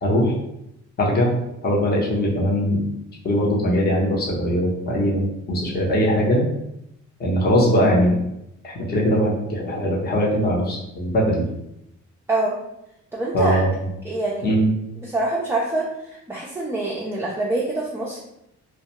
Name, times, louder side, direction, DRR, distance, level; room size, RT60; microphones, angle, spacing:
voice 1, 0.0-0.3 1.0-1.3 1.6-2.8 3.2-6.4 7.2-8.1 8.6-11.4 13.3-13.9 14.4-14.7, equal, 30° left, -3 dB, 0.7 m, -20 dB
voice 2, 13.1-13.6 14.0-14.4 15.0-18.2, right 2 dB, 10° right, -4 dB, 0.4 m, -25 dB
2.2 x 2.2 x 2.8 m, 0.82 s
cardioid pair, 90°, 30 cm